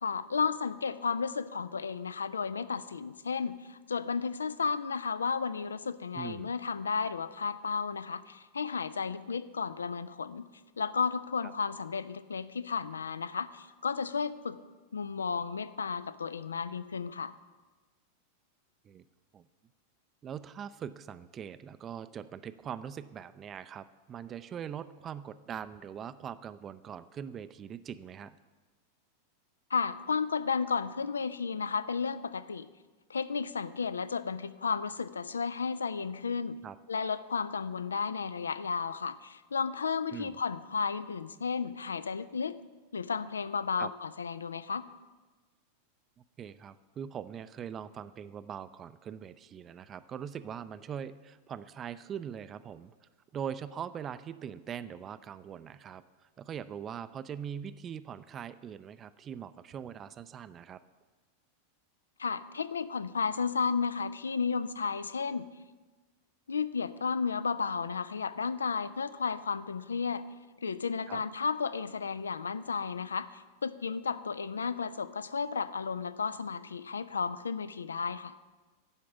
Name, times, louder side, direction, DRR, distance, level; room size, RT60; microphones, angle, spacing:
voice 1, 0.0-10.5 10.8-14.6 14.9-17.3 29.7-32.7 33.1-36.6 36.9-42.6 42.9-44.9 62.2-65.5 66.5-70.2 70.6-78.4, left 5 dB, 70° left, 15 dB, 0.3 m, -33 dB
voice 2, 6.1-6.5 11.4-11.5 18.8-19.1 19.3-19.5 20.2-28.4 36.6-36.8 40.1-40.4 43.8-43.9 46.4-52.9 53.3-56.0 56.4-60.8 71.1-71.2, right 8 dB, 25° right, 14 dB, 0.4 m, -42 dB
10.5 x 5.1 x 5.9 m, 1.3 s
figure-of-eight pair, 90°, 0 cm